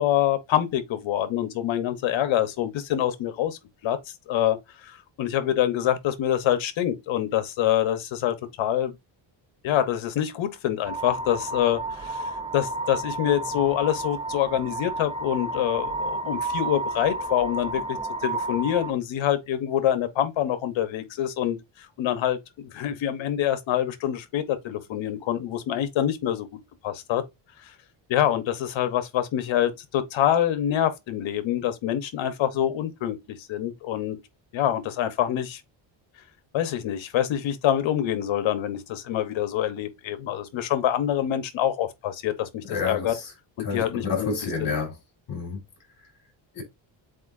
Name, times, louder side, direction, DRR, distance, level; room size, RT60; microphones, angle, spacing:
voice 1, 0.0-8.9 9.6-12.2 12.5-18.0 18.2-26.5 26.8-27.2 27.6-27.7 28.1-34.2 34.5-35.6 36.5-43.1 43.6-44.3 44.6-44.7, left 11 dB, 70° left, 1.0 m, -26 dB
sound 1, 10.9-18.9, right 2 dB, 15° right, 0.3 m, -31 dB
voice 2, 42.7-43.3 43.6-44.9 45.3-45.6 46.5-46.6, left 4 dB, 45° left, 2.9 m, -29 dB
7.7 x 2.6 x 2.5 m
cardioid pair, 165°, 48 cm